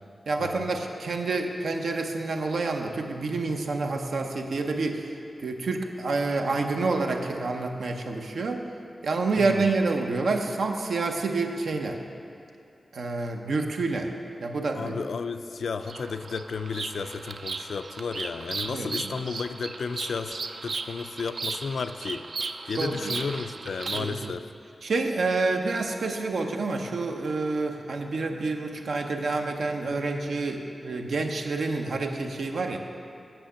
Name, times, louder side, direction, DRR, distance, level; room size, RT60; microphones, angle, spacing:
voice 1, 0.3-5.1 5.4-8.6 9.0-12.0 12.9-14.1 14.4-15.0 18.7-18.9 22.8-23.1 23.9-24.3 24.8-32.8, right 3 dB, 85° right, 3 dB, 0.7 m, -28 dB
voice 2, 9.4-9.7 14.7-22.3 22.6-24.5, left 5 dB, 90° left, 10 dB, 0.3 m, -33 dB
Bird vocalization bird call bird song, 15.8-24.3, right 4 dB, 70° right, 0.4 m, -36 dB
8.9 x 5.7 x 7.2 m, 2.6 s
wide cardioid pair, 85°, 0 cm